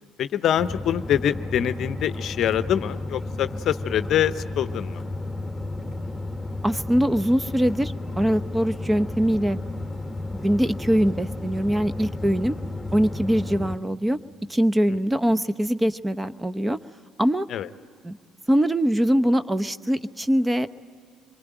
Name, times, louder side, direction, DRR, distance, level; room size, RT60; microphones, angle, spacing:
voice 1, 0.2-5.0 14.9-15.0 15.3-15.4 17.5-17.7, left 10 dB, 60° left, 14 dB, 0.7 m, -25 dB
sound 1, 0.6-13.8, left 2 dB, 5° left, 1.9 m, -33 dB
voice 2, 6.6-9.6 10.4-12.5 12.9-14.2 14.5-16.8 17.2-17.5 18.0-18.2 18.5-20.7, equal, 15° right, 13 dB, 0.8 m, -22 dB
26.0 x 23.5 x 9.1 m, 2.1 s
hypercardioid pair, 55°, 0 cm